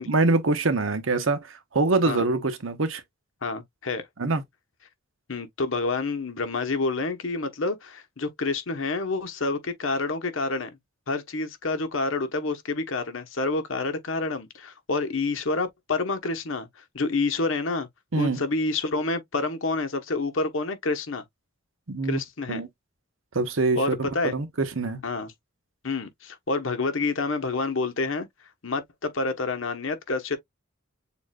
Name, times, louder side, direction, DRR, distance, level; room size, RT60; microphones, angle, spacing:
voice 1, 0.1-3.0 4.2-4.4 18.1-18.4 21.9-22.2 22.5-22.7 23.3-25.0, right 3 dB, 85° right, 1.0 m, -24 dB
voice 2, 3.4-4.0 5.3-10.7 11.1-16.7 16.9-17.9 18.1-21.2 22.1-22.6 23.8-24.3 25.0-25.3 25.8-28.3 28.6-30.4, left 3 dB, 75° left, 1.1 m, -28 dB
7.1 x 2.6 x 2.3 m
head